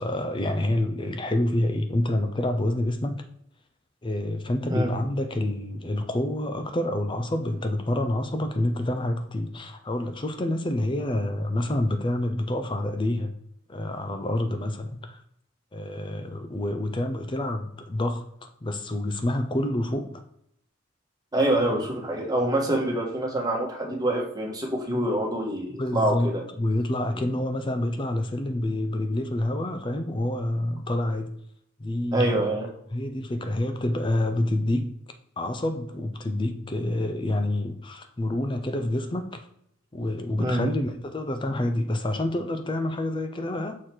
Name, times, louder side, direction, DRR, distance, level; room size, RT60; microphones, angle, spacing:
voice 1, 0.0-3.2 4.0-13.3 13.7-15.2 15.7-20.2 25.7-26.3 26.6-31.4 31.8-32.4 32.9-34.9 35.4-39.5 39.9-43.8, left 1 dB, 25° left, 7 dB, 0.5 m, -27 dB
voice 2, 4.7-5.0 21.3-26.4 32.1-32.7 40.4-40.7, right 1 dB, 20° right, 0 dB, 1.3 m, -26 dB
6.5 x 3.8 x 4.5 m, 0.72 s
head